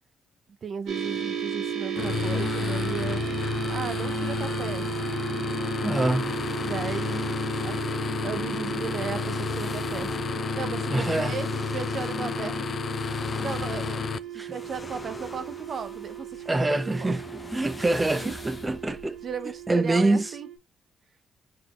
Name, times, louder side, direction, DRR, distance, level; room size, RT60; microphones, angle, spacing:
voice 1, 0.6-3.2 3.7-5.1 6.6-7.4 7.6-7.8 8.2-10.1 10.6-12.7 13.4-14.0 14.3-17.1 18.1-18.3 19.2-20.5, right 6 dB, 55° right, 0.7 m, -36 dB
sound 1, 0.9-20.6, right 10 dB, 75° right, 1.1 m, -35 dB
sound 2, 2.0-14.2, left 6 dB, 50° left, 0.3 m, -31 dB
voice 2, 5.8-6.4 10.9-11.3 14.4-14.5 16.5-19.1 19.7-20.3, right 2 dB, 20° right, 0.6 m, -25 dB
sound 3, 6.1-20.0, left 2 dB, 25° left, 0.8 m, -44 dB
4.0 x 3.9 x 3.1 m
cardioid pair, 75°, 0 cm